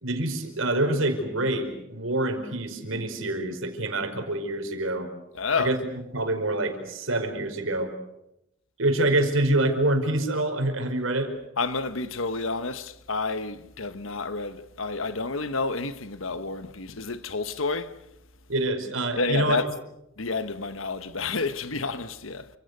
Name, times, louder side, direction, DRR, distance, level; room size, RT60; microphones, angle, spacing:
voice 1, 0.0-5.1 5.6-7.9 8.8-11.3 18.5-19.7, right 2 dB, 75° right, 5.0 m, -26 dB
voice 2, 5.3-5.8 11.6-17.9 19.2-19.6 20.2-22.5, left 4 dB, 80° left, 1.4 m, -29 dB
29.0 x 26.5 x 6.8 m
head